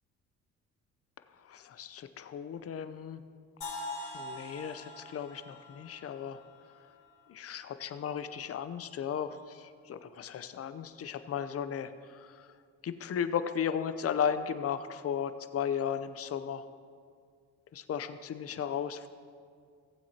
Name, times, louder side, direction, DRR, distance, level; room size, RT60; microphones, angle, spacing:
voice 1, 1.4-3.2 4.1-6.4 7.3-12.5 12.8-16.6 17.7-19.1, left 8 dB, 50° left, 11 dB, 0.7 m, -35 dB
sound 1, 3.6-7.5, left 2 dB, 80° left, 3.0 m, -44 dB
18.0 x 7.8 x 2.9 m, 2.1 s
cardioid pair, 90°, 30 cm